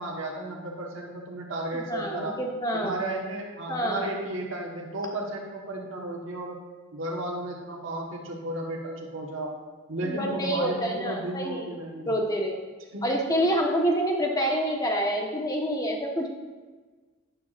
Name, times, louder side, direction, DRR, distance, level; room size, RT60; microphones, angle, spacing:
voice 1, 0.0-2.4 2.7-6.6 6.9-9.6 9.9-12.1 12.9-13.1, right 1 dB, 75° right, -1 dB, 1.3 m, -34 dB
voice 2, 1.7-3.0 3.7-4.1 10.0-11.7 12.1-12.6 13.0-16.3, equal, 20° left, 1 dB, 1.2 m, -27 dB
11.0 x 9.4 x 2.5 m, 1.4 s
head